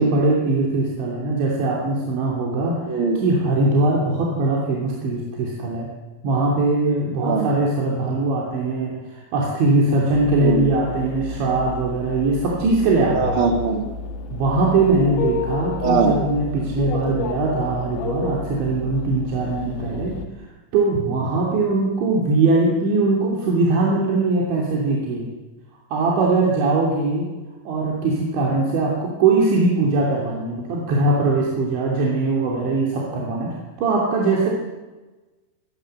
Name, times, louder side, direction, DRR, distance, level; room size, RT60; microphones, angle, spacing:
voice 1, 0.0-5.9 6.2-13.5 14.3-20.2 20.7-25.3 25.9-27.3 27.7-34.5, right 3 dB, 85° right, -2 dB, 5.4 m, -21 dB
voice 2, 2.9-3.2 7.2-7.5 10.4-10.7 13.1-13.8 15.8-16.2, right 4 dB, 35° right, 4 dB, 2.8 m, -21 dB
sound 1, 10.1-20.3, left 3 dB, 85° left, 4.5 m, -31 dB
24.5 x 20.5 x 7.9 m, 1.2 s
omnidirectional pair, 5.1 m